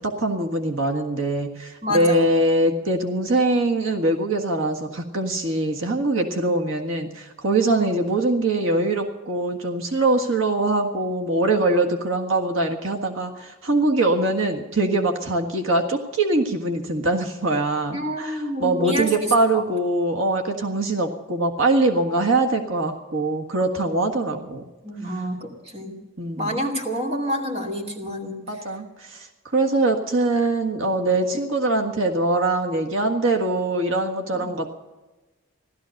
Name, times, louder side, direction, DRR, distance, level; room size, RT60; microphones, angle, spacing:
voice 1, 0.0-24.6 26.2-26.6 28.5-29.3 29.5-34.7, right 2 dB, 75° right, 2 dB, 1.6 m, -23 dB
voice 2, 1.8-2.2 7.7-7.9 17.9-19.6 24.8-26.0 26.4-28.4 34.3-34.4, equal, 30° right, 2 dB, 2.4 m, -28 dB
16.5 x 13.0 x 6.5 m, 1.1 s
head